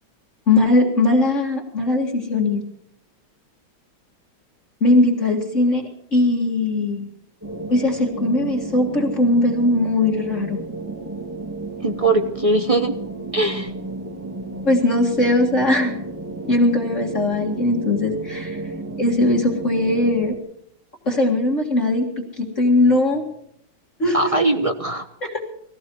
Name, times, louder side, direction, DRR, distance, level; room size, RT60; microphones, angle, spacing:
voice 1, 0.5-2.7 4.8-7.1 7.7-10.6 14.6-16.0 16.4-18.6 19.0-20.3 21.1-22.1 22.4-23.2 24.0-24.3 25.2-25.4, left 2 dB, 40° left, -1 dB, 2.1 m, -19 dB
sound 1, 7.4-20.4, right 2 dB, 10° right, 1.6 m, -32 dB
voice 2, 11.8-12.9 13.3-13.7 24.1-25.1, right 2 dB, 30° right, 6 dB, 0.6 m, -20 dB
20.0 x 15.0 x 4.6 m, 0.69 s
omnidirectional pair, 2.2 m